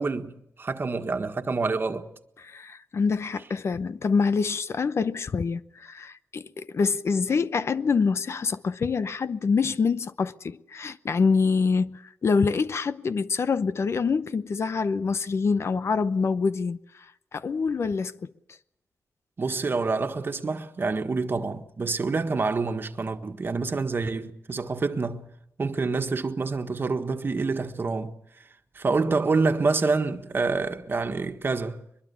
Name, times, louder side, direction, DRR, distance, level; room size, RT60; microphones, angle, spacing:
voice 1, 0.0-2.1 19.4-25.3 25.6-28.5 28.8-31.9, right 4 dB, 45° right, 1.6 m, -27 dB
voice 2, 2.5-17.1 17.3-18.3, left 5 dB, 55° left, 0.8 m, -26 dB
22.5 x 22.0 x 7.1 m
wide cardioid pair, 95°, 5 cm